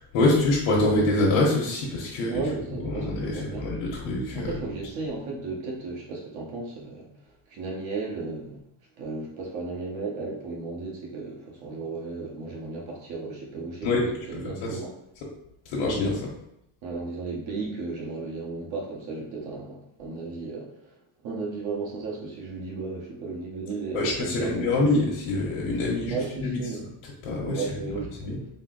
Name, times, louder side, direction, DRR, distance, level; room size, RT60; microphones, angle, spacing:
voice 1, 0.1-2.4 2.7-4.6 13.8-14.0 14.3-14.8 15.2-15.3 15.7-16.3 23.9-26.6 27.2-27.7 27.9-28.4, left 2 dB, 70° left, -4 dB, 1.1 m, -25 dB
voice 2, 2.3-3.7 4.3-7.1 7.5-8.6 9.0-14.9 16.8-20.9 21.2-24.7 26.1-26.9 27.5-28.1, right 3 dB, 65° right, -2 dB, 1.3 m, -34 dB
4.1 x 2.0 x 3.8 m, 0.81 s
cardioid pair, 145°, 48 cm